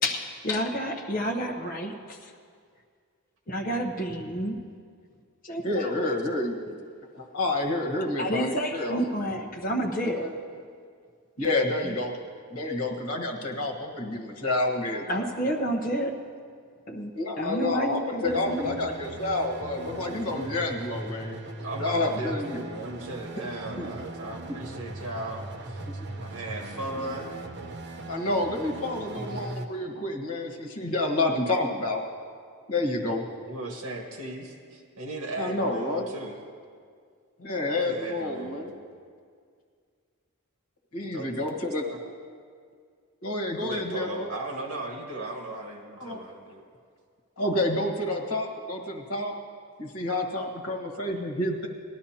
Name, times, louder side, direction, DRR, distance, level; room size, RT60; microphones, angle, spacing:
voice 1, 0.0-2.3 3.5-4.6 5.4-6.1 8.2-10.3 15.1-16.1 16.9-18.7, equal, 40° left, 0 dB, 0.9 m, -30 dB
voice 2, 5.6-6.8 7.1-9.0 10.2-10.3 11.4-12.1 12.5-15.2 17.1-21.4 21.8-22.6 23.8-23.9 25.9-26.0 28.1-32.0 32.7-33.2 35.4-36.1 37.4-38.7 40.9-41.8 43.2-44.3 46.0-46.2 47.4-49.3 49.8-51.7, left 2 dB, 80° left, 1 dB, 1.5 m, -29 dB
sound 1, 18.2-29.7, right 2 dB, 50° right, 0.8 m, -39 dB
voice 3, 21.6-25.8 26.2-27.3 33.4-36.4 37.7-38.6 41.1-42.0 43.6-46.6, right 1 dB, 75° right, 1 dB, 1.5 m, -37 dB
19.0 x 12.0 x 2.9 m, 2.1 s
head